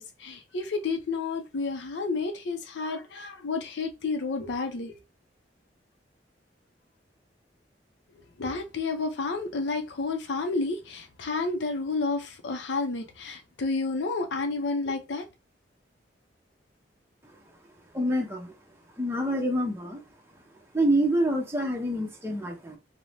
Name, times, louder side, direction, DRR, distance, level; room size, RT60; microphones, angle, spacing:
voice 1, 0.0-5.0 8.4-15.2, left 3 dB, 80° left, 0.5 m, -30 dB
voice 2, 17.9-18.5 19.0-20.0 20.7-22.8, right 1 dB, 15° right, 0.6 m, -26 dB
2.6 x 2.0 x 3.1 m
head